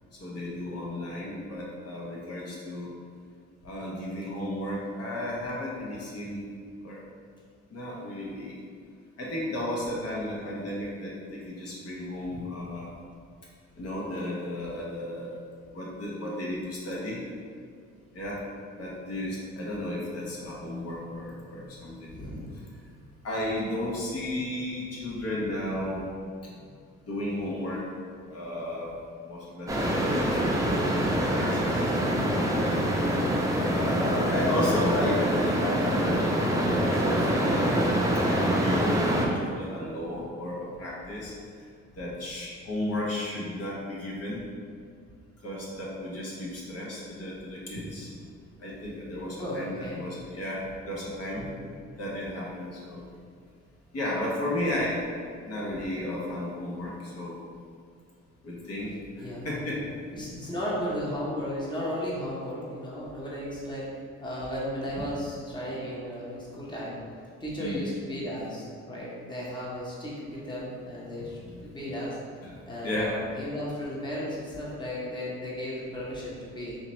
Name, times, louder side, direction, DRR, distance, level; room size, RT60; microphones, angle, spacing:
voice 1, 0.2-2.9 3.6-6.5 6.8-7.0 7.7-8.6 9.2-12.9 13.8-15.4 15.7-17.2 18.1-18.4 18.8-22.3 22.7-22.9 23.2-26.1 26.4-26.6 27.1-27.8 28.2-29.0 29.2-30.8 31.1-31.9 32.6-32.8 33.6-37.8 38.4-39.0 39.3-41.3 42.0-44.4 45.4-48.1 48.6-51.4 52.0-53.1 53.9-55.0 55.4-57.4 58.4-60.5 65.5-66.7 67.6-67.8 71.4-71.7 72.4-72.6 72.8-73.2, left 1 dB, 55° left, -5 dB, 1.0 m, -34 dB
voice 2, 22.0-22.5 49.4-50.0 51.4-51.7 59.2-59.4 60.1-63.9 64.2-67.0 67.4-72.2 72.7-76.8, equal, 15° left, -6 dB, 1.0 m, -35 dB
sound 1, 29.7-39.3, equal, 10° right, 0.6 m, -25 dB
4.0 x 2.9 x 3.1 m, 2.2 s
cardioid pair, 90°, 30 cm